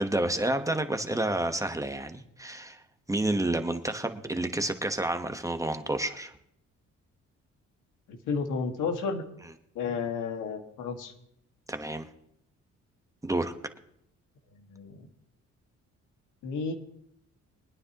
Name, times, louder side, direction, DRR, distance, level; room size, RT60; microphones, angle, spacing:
voice 1, 0.0-2.8 3.1-6.4 11.7-12.1 13.2-13.5, right 1 dB, 10° right, 7 dB, 1.2 m, -29 dB
voice 2, 8.1-9.2 9.8-11.1 14.6-15.1 16.4-16.7, left 5 dB, 85° left, 4 dB, 1.9 m, -32 dB
23.0 x 9.6 x 3.0 m, 0.73 s
cardioid pair, 90°, 30 cm